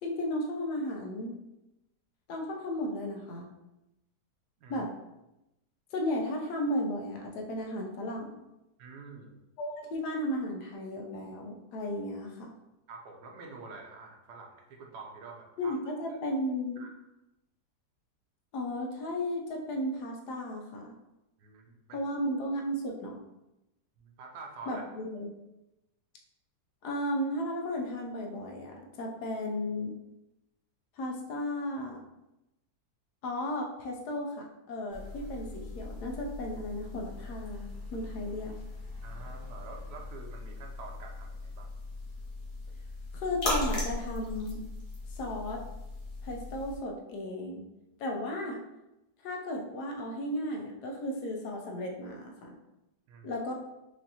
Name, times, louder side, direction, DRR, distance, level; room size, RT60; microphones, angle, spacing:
voice 1, 0.0-1.3 2.3-3.5 4.7-4.9 5.9-8.4 9.6-12.5 15.6-16.8 18.5-20.9 21.9-23.2 24.7-25.3 26.8-29.9 31.0-32.0 33.2-38.5 43.1-44.6 45.1-45.6 46.2-47.6 48.0-48.6 49.2-52.6 53.2-53.5, left 1 dB, 75° left, 1 dB, 1.3 m, -34 dB
voice 2, 8.8-9.4 12.9-15.9 16.8-16.9 21.4-22.0 24.0-24.8 39.0-41.7 53.1-53.3, right 4 dB, 75° right, 2 dB, 1.2 m, -47 dB
ring drop water, 34.9-46.8, left 2 dB, 40° left, 0.9 m, -39 dB
4.9 x 2.6 x 2.8 m, 0.92 s
omnidirectional pair, 1.8 m